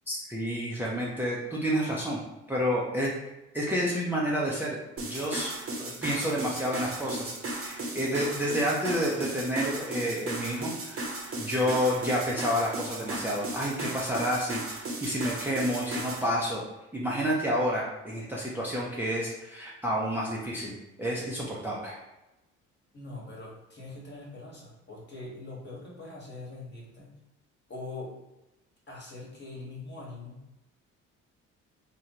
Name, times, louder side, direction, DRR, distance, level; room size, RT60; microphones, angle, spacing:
voice 1, 0.1-2.2 2.5-3.1 3.5-4.8 5.0-11.1 11.4-14.8 15.0-16.6 16.9-22.0, equal, 5° right, -5 dB, 0.7 m, -29 dB
sound 1, 5.0-16.3, right 2 dB, 35° right, 1.0 m, -36 dB
voice 2, 22.9-27.1 27.7-28.1 28.9-30.4, left 2 dB, 30° left, -3 dB, 1.4 m, -42 dB
3.7 x 2.2 x 2.9 m, 0.96 s
hypercardioid pair, 55°, 36 cm